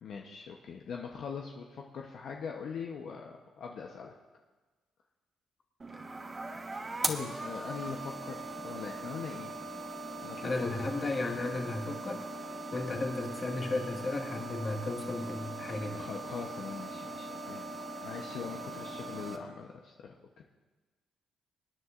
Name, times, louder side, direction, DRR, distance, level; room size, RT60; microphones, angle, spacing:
voice 1, 0.0-4.1 7.0-9.5 10.2-10.7 15.9-17.6 18.0-20.4, left 6 dB, 65° left, 1 dB, 0.8 m, -42 dB
sound 1, 5.8-19.4, right 2 dB, 30° right, 1.1 m, -40 dB
voice 2, 10.4-12.3 12.7-16.0, left 2 dB, 35° left, 2 dB, 1.7 m, -34 dB
25.0 x 9.6 x 2.5 m, 1.3 s
cardioid pair, 90°, 0 cm